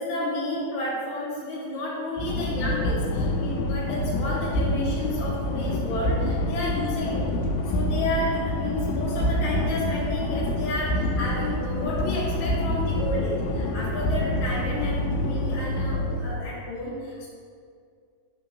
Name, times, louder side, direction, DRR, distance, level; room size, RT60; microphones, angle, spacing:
voice 1, 0.0-7.2 7.7-17.3, left 1 dB, 55° left, -7 dB, 2.3 m, -31 dB
sound 1, 2.2-16.3, left 1 dB, 80° left, 2.3 m, -27 dB
5.2 x 3.7 x 5.2 m, 2.2 s
omnidirectional pair, 4.2 m